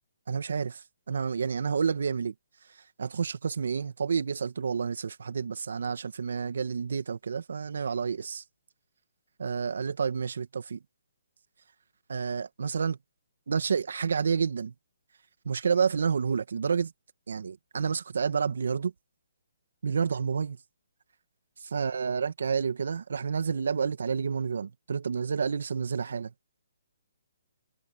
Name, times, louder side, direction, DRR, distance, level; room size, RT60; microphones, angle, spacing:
voice 1, 0.3-2.3 3.0-8.4 9.4-10.8 12.1-13.0 13.5-14.7 15.5-16.9 17.3-18.9 19.8-20.6 21.7-26.3, right 6 dB, 75° right, 2.0 m, -29 dB
hypercardioid pair, 160°, 0 cm